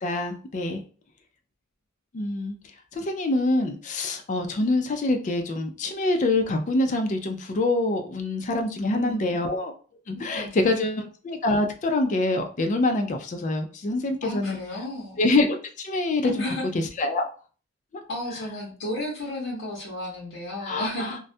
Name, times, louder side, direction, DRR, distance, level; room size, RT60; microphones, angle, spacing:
voice 1, 0.0-0.8 2.1-2.6 3.0-9.7 10.1-14.6 15.2-16.3 17.0-17.3 20.7-21.1, left 2 dB, 35° left, 5 dB, 0.4 m, -25 dB
voice 2, 8.8-9.4 10.1-10.8 14.2-15.2 16.2-16.7 18.1-21.2, left 1 dB, 65° left, -5 dB, 0.7 m, -33 dB
2.3 x 2.1 x 2.6 m, 0.39 s
head